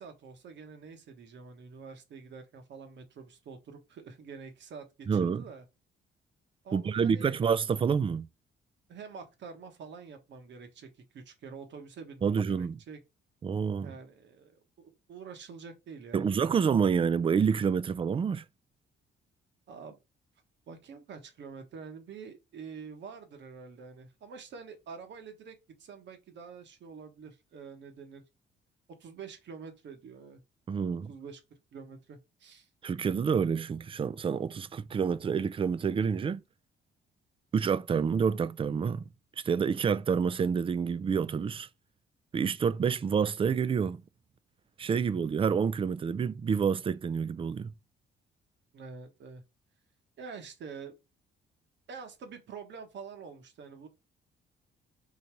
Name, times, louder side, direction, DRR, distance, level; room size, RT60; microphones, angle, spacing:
voice 1, 0.0-5.6 6.6-7.5 8.9-13.0 13.8-14.5 14.8-16.5 19.7-20.0 20.7-28.2 29.0-30.4 30.9-31.4 31.7-32.7 48.7-49.4 50.2-51.0 51.9-53.9, right 5 dB, 65° right, 1.2 m, -46 dB
voice 2, 5.1-5.4 6.7-8.3 12.2-12.8 13.4-13.9 16.1-18.4 30.7-31.1 32.8-36.4 37.5-39.1 39.4-41.7 42.3-44.0 44.8-47.7, right 6 dB, 25° right, 0.3 m, -28 dB
3.9 x 2.8 x 4.5 m
cardioid pair, 90°, 20 cm